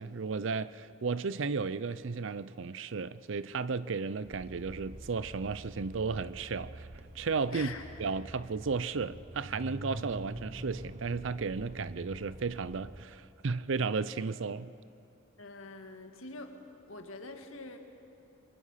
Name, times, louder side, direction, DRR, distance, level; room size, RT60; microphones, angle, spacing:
voice 1, 0.0-6.9 7.1-7.7 8.0-14.7, right 4 dB, 70° right, 0.5 m, -34 dB
sound 1, 4.2-13.0, right 1 dB, 30° right, 0.8 m, -46 dB
voice 2, 7.5-7.8 15.4-16.5 16.9-17.8, left 3 dB, 85° left, 2.0 m, -44 dB
24.5 x 23.0 x 5.8 m
head